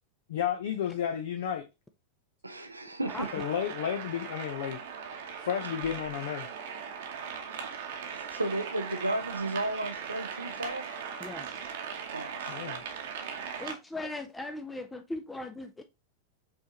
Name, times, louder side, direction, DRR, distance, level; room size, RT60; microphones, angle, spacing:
voice 1, 0.3-1.7 3.3-4.8 5.4-6.5 12.5-12.8, left 9 dB, 55° left, 0.6 m, -32 dB
voice 2, 2.4-3.3 8.1-10.9 12.1-12.8, right 1 dB, 85° right, 0.5 m, -34 dB
sound 1, 3.1-13.7, right 7 dB, 55° right, 0.9 m, -39 dB
voice 3, 11.2-11.5 13.6-15.8, left 2 dB, 10° left, 0.5 m, -38 dB
5.3 x 3.4 x 2.9 m
figure-of-eight pair, 90°, 0 cm